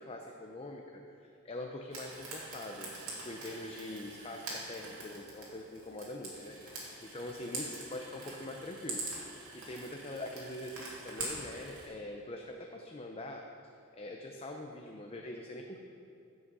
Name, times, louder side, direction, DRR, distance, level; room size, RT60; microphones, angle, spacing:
voice 1, 0.0-13.4 13.9-15.8, left 1 dB, 25° left, 2 dB, 0.6 m, -44 dB
Frying (food), 1.9-11.9, right 2 dB, 65° right, 2.8 m, -44 dB
15.5 x 6.3 x 5.4 m, 2.7 s
head